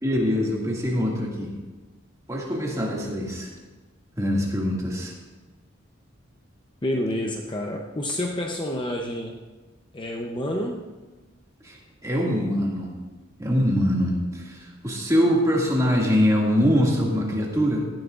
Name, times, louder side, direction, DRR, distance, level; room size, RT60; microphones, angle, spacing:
voice 1, 0.0-1.5 2.3-3.5 4.2-5.1 11.6-11.8 12.0-13.0 13.4-17.8, equal, 15° right, -3 dB, 2.2 m, -23 dB
voice 2, 6.8-9.4 9.9-10.8, left 1 dB, 25° left, 1 dB, 0.7 m, -28 dB
17.5 x 12.0 x 2.5 m, 1.3 s
head